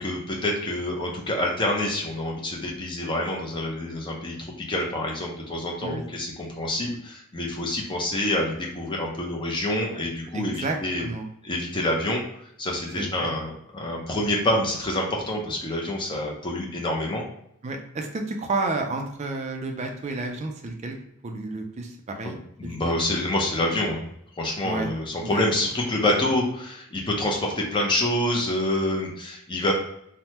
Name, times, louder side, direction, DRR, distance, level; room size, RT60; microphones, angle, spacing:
voice 1, 0.0-11.1 11.4-12.2 12.6-17.3 22.2-24.0 24.4-29.7, left 1 dB, 20° left, -1 dB, 0.5 m, -27 dB
voice 2, 10.3-11.3 13.0-13.3 14.1-14.2 17.6-21.0 21.2-22.4 22.6-22.9 24.6-24.9 25.2-25.4, right 2 dB, 30° right, 3 dB, 0.4 m, -31 dB
3.2 x 2.1 x 2.8 m, 0.75 s
head